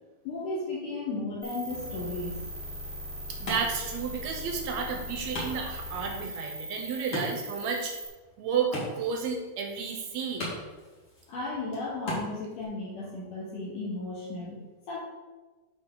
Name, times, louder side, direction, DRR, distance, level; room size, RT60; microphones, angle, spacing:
voice 1, 0.2-2.4 2.8-2.9 11.3-15.0, left 2 dB, 70° left, -4 dB, 2.6 m, -35 dB
sound 1, 1.4-8.1, equal, 20° right, 1.4 m, -39 dB
Wood, 2.7-12.7, equal, 40° left, 2.5 m, -41 dB
voice 2, 3.4-7.9 8.4-10.5, right 6 dB, 75° right, 3 dB, 1.7 m, -32 dB
11.0 x 4.7 x 3.8 m, 1.2 s
omnidirectional pair, 4.0 m